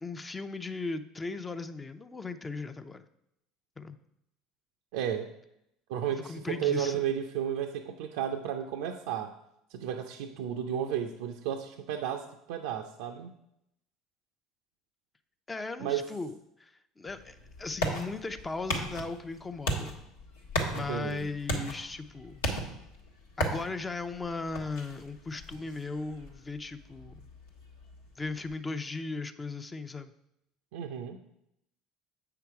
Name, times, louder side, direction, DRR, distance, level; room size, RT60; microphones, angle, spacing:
voice 1, 0.0-3.0 3.8-4.0 6.3-7.0 15.5-16.3 16.6-20.0 20.7-22.5 23.4-27.2 28.2-30.1, left 3 dB, 20° left, 10 dB, 0.7 m, -37 dB
voice 2, 4.9-5.3 5.9-9.3 9.7-13.3 15.8-16.1 20.7-21.3 30.7-31.2, right 9 dB, 75° right, 4 dB, 0.5 m, -33 dB
sound 1, 17.1-28.5, equal, 85° left, 1.4 m, -37 dB
8.0 x 5.8 x 4.7 m, 0.81 s
hypercardioid pair, 75°, 0 cm